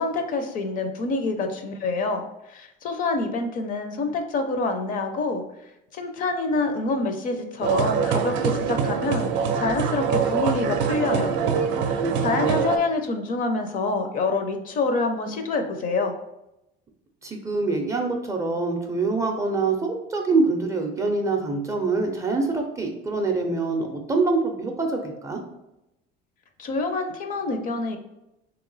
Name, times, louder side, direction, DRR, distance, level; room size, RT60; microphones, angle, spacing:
voice 1, 0.0-2.2 2.5-5.4 5.9-11.3 12.2-16.1 26.6-28.0, left 3 dB, 45° left, 6 dB, 0.5 m, -26 dB
sound 1, 7.6-12.8, right 6 dB, 70° right, 0.5 m, -24 dB
voice 2, 11.3-12.5 17.2-25.4, right 3 dB, 15° right, 2 dB, 0.4 m, -25 dB
3.3 x 2.9 x 3.9 m, 0.89 s
cardioid pair, 150°, 20 cm